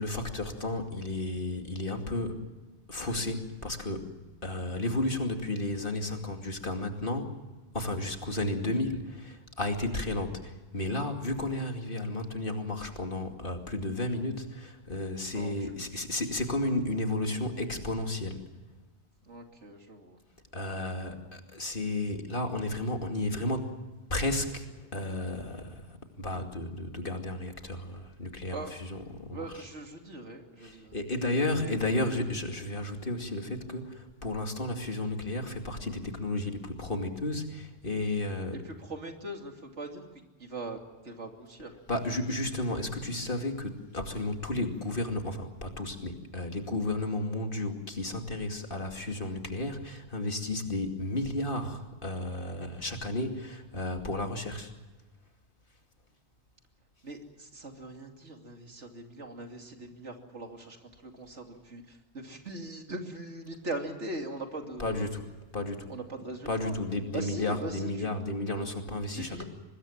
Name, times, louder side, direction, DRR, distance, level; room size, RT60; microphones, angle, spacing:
voice 1, 0.0-2.4 2.9-7.3 7.7-18.5 20.5-23.8 24.1-29.7 30.6-38.6 41.9-54.7 64.8-65.3 65.5-65.9 66.5-69.4, left 2 dB, 50° left, 4 dB, 2.7 m, -33 dB
voice 2, 15.3-16.0 19.3-20.2 28.5-28.7 29.3-31.0 31.6-31.9 38.6-40.0 40.4-40.8 41.0-41.7 57.0-65.1 65.9-66.7 67.1-68.1 69.2-69.4, right 2 dB, 80° right, 3 dB, 3.1 m, -41 dB
24.5 x 21.0 x 7.3 m, 1.2 s
omnidirectional pair, 1.2 m